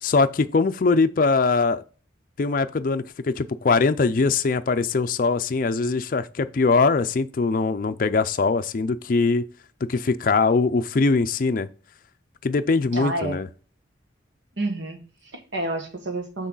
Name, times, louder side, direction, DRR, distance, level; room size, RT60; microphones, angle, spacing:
voice 1, 0.0-1.8 2.4-9.5 9.8-11.7 12.4-13.5, left 4 dB, 50° left, 0.4 m, -22 dB
voice 2, 12.9-13.4 14.6-16.5, right 2 dB, 85° right, 1.5 m, -29 dB
6.6 x 6.1 x 3.9 m
head